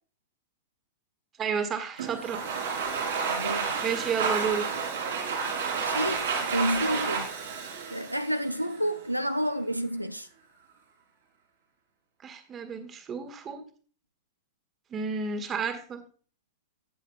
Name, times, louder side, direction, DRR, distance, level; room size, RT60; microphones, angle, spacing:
voice 1, 1.4-2.4 3.8-4.6 12.2-13.6 14.9-16.0, right 6 dB, 25° right, 1.6 m, -31 dB
Domestic sounds home sounds, 2.0-8.9, right 5 dB, 65° right, 3.1 m, -31 dB
voice 2, 3.3-3.7 5.9-7.3 7.9-10.3, equal, 90° right, 0.4 m, -30 dB
13.0 x 8.3 x 2.2 m
figure-of-eight pair, 90°, 0 cm